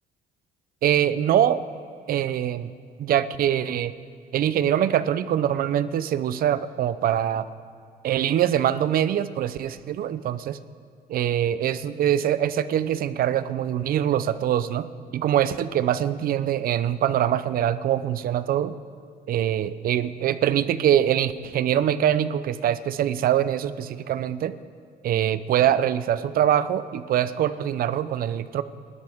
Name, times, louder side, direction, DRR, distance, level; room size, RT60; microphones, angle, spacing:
voice 1, 0.8-1.6 2.1-2.7 3.0-3.9 4.3-7.5 8.0-10.6 11.1-14.9 15.1-18.7 19.3-24.5 25.0-28.6, right 10 dB, 60° right, 14 dB, 0.7 m, -23 dB
30.0 x 12.0 x 3.7 m, 2.3 s
cardioid pair, 110°, 17 cm